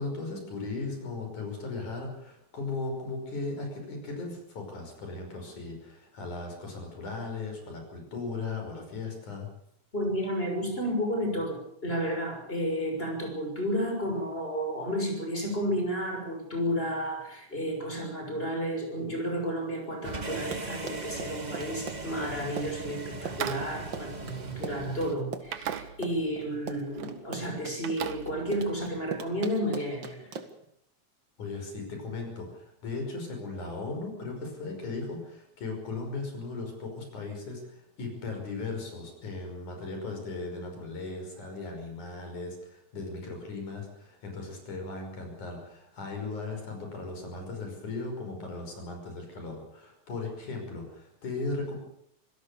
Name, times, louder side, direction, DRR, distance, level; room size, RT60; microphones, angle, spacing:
voice 1, 0.0-9.5 31.4-51.8, left 3 dB, 85° left, 3 dB, 7.1 m, -37 dB
voice 2, 9.9-30.3, equal, 15° left, 3 dB, 6.6 m, -32 dB
sound 1, 20.0-25.2, right 3 dB, 25° right, 1.0 m, -39 dB
Run, 20.3-30.7, right 5 dB, 45° right, 2.1 m, -40 dB
sound 2, 23.3-25.0 25.5-26.4 26.7-27.1 27.4-29.0, right 10 dB, 75° right, 2.6 m, -39 dB
26.0 x 17.5 x 7.0 m, 0.73 s
omnidirectional pair, 3.4 m